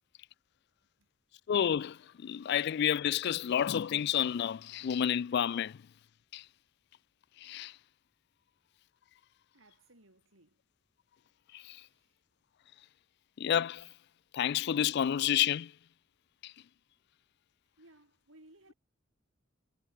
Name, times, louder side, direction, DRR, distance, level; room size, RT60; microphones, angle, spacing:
voice 1, 1.5-5.8 6.3-6.4 7.4-7.7 11.7-11.8 13.4-13.9 14.3-15.7 16.4-16.5, left 9 dB, 55° left, 0.3 m, -30 dB
voice 2, 9.5-10.6 11.9-12.1 17.8-18.7, right 1 dB, 85° right, 5.9 m, -60 dB
head